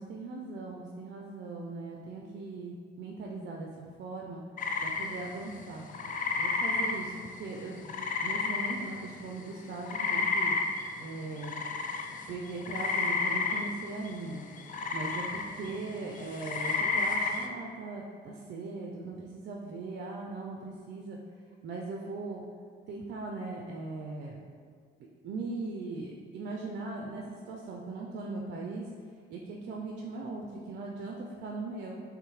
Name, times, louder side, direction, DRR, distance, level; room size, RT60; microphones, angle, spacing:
voice 1, 0.0-4.4 4.8-5.9 6.4-10.6 11.0-11.5 12.3-14.4 14.9-21.2 21.6-22.4 22.9-24.4 25.2-28.9 29.3-32.0, right 3 dB, 60° right, 0 dB, 0.4 m, -39 dB
sound 1, 4.6-9.3 9.5-17.5, left 4 dB, 45° left, 0.4 m, -32 dB
5.4 x 2.1 x 3.1 m, 2.1 s
cardioid pair, 90°, 20 cm